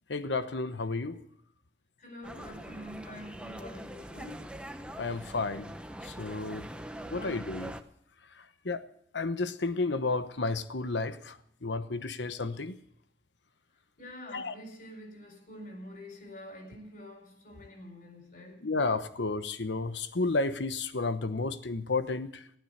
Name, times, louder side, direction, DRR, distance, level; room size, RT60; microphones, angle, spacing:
voice 1, 0.1-1.2 5.0-5.7 6.0-6.7 7.1-7.7 8.6-8.8 9.1-12.7 14.3-14.5 18.6-22.4, left 3 dB, 85° left, 1.0 m, -32 dB
voice 2, 2.0-4.5 7.1-7.3 14.0-18.6, equal, 50° left, 5.0 m, -46 dB
sound 1, 2.2-7.8, right 1 dB, 5° right, 0.9 m, -43 dB
15.0 x 12.5 x 6.6 m
head